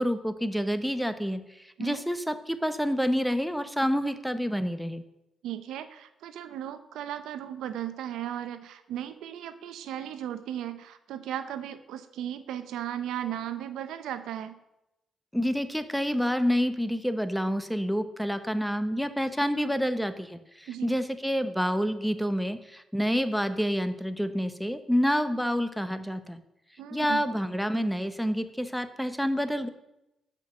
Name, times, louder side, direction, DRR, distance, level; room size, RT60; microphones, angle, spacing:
voice 1, 0.0-5.0 15.3-26.4 26.9-29.7, equal, ahead, 11 dB, 0.9 m, -28 dB
voice 2, 5.4-14.6 20.7-20.9 26.8-27.2, right 10 dB, 85° right, 11 dB, 0.7 m, -36 dB
12.5 x 5.3 x 6.7 m, 0.89 s
supercardioid pair, 65°, 0 cm